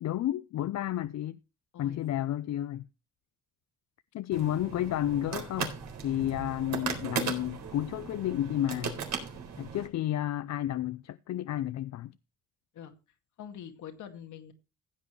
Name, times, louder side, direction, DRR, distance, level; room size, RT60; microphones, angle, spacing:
voice 1, 0.0-1.4 1.8-2.9 4.1-5.7 6.0-9.0 9.6-12.1, left 12 dB, 60° left, 0.6 m, -31 dB
voice 2, 1.7-2.3 12.7-12.9 13.4-14.5, left 9 dB, 75° left, 2.1 m, -45 dB
sound 1, 4.3-9.9, right 6 dB, 65° right, 3.8 m, -37 dB
15.0 x 8.6 x 3.1 m
cardioid pair, 90°, 30 cm